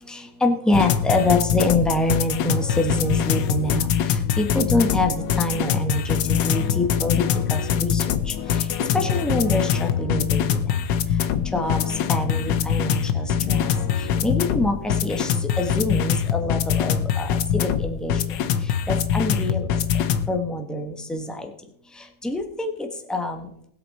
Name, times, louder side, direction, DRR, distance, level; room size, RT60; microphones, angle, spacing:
voice 1, 0.1-10.6 11.5-13.7 14.0-18.4 18.6-19.7 20.3-21.5 21.9-23.5, left 1 dB, ahead, 3 dB, 1.0 m, -26 dB
sound 1, 0.7-20.3, left 8 dB, 70° left, 1.4 m, -23 dB
20.0 x 8.3 x 4.3 m, 0.72 s
omnidirectional pair, 2.2 m